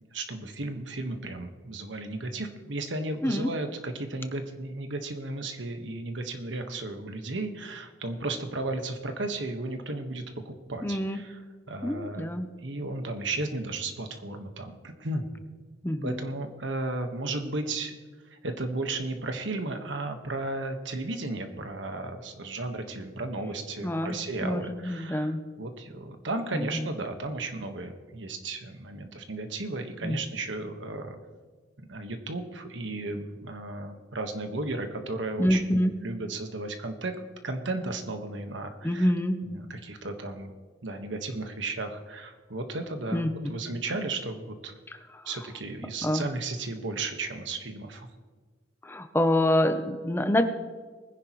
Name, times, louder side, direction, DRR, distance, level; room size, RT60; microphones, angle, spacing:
voice 1, 0.1-11.4 11.7-12.3 12.6-15.3 16.0-18.0 18.3-31.2 31.9-37.2 37.4-39.1 39.4-40.5 40.8-44.7 45.2-48.1, right 2 dB, 90° right, 6 dB, 1.4 m, -34 dB
voice 2, 10.8-11.2 11.8-12.5 15.8-16.2 23.8-25.4 26.5-26.9 30.0-30.2 35.4-36.0 38.8-39.4 43.1-43.3 45.1-45.2 46.0-46.3 48.8-50.4, left 1 dB, 10° left, 8 dB, 0.6 m, -26 dB
21.0 x 10.0 x 3.1 m, 1.4 s
head